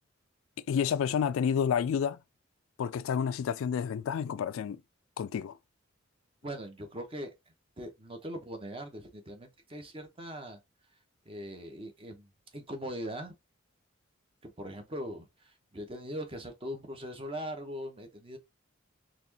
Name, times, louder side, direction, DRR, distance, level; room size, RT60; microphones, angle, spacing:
voice 1, 0.7-2.2 2.8-4.8 5.2-5.6, left 7 dB, 80° left, 0.3 m, -29 dB
voice 2, 6.4-7.3 7.8-10.6 11.2-13.3 14.4-18.4, equal, 25° right, 0.9 m, -41 dB
4.2 x 3.1 x 2.8 m
head